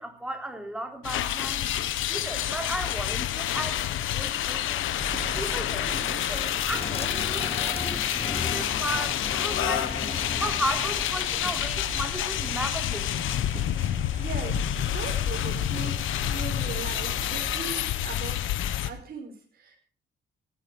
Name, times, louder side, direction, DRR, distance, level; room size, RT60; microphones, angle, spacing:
voice 1, 0.0-1.7 2.1-4.9 5.4-9.9 10.4-13.3, right 1 dB, 5° right, 5 dB, 3.8 m, -35 dB
sound 1, 1.0-18.9, left 12 dB, 80° left, 1.3 m, -28 dB
sound 2, 5.0-17.6, right 4 dB, 30° right, 1.7 m, -40 dB
sound 3, 6.7-11.7, left 5 dB, 30° left, 1.0 m, -36 dB
voice 2, 13.8-16.0 16.2-18.5 18.9-19.8, right 5 dB, 50° right, 1 dB, 5.0 m, -39 dB
17.0 x 10.0 x 6.3 m, 0.41 s
cardioid pair, 90°, 20 cm